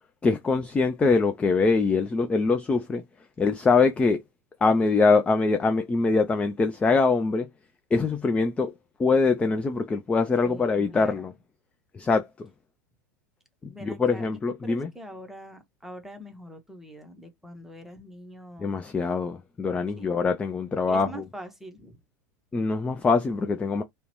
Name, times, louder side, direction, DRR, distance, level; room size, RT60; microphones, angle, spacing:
voice 1, 0.2-3.0 3.4-4.2 4.6-7.5 7.9-8.7 9.0-11.3 11.9-12.5 13.6-14.9 18.6-21.2 22.5-23.8, left 4 dB, 10° left, 0.3 m, -23 dB
voice 2, 10.4-11.2 13.7-14.3 14.6-18.7 20.0-20.1 20.9-22.0, equal, 5° right, 0.8 m, -44 dB
2.9 x 2.1 x 2.9 m
figure-of-eight pair, 85°, 10 cm